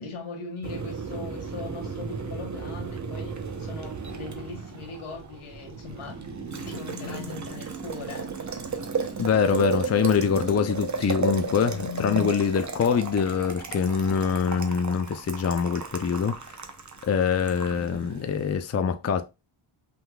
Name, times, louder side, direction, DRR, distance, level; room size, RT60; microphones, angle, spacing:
voice 1, 0.0-6.3 6.6-8.3, left 3 dB, 85° left, 1.8 m, -40 dB
Boiling, 0.6-18.6, right 5 dB, 35° right, 0.8 m, -34 dB
sound 1, 5.6-7.7 10.7-12.2, left 11 dB, 65° left, 1.7 m, -41 dB
voice 2, 9.2-16.4 17.0-19.2, left 6 dB, 35° left, 0.5 m, -24 dB
5.7 x 3.8 x 2.3 m
wide cardioid pair, 135°, 49 cm